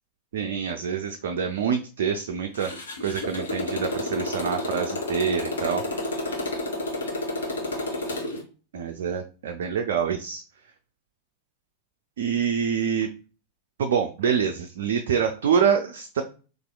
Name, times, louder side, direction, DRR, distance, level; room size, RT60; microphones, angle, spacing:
voice 1, 0.3-5.9 8.7-10.4 12.2-13.1 13.8-16.2, right 7 dB, 60° right, 5 dB, 0.3 m, -26 dB
Motorcycle, 2.5-8.4, left 2 dB, 70° left, 0.8 m, -30 dB
4.1 x 2.5 x 2.2 m, 0.35 s
figure-of-eight pair, 90°, 0 cm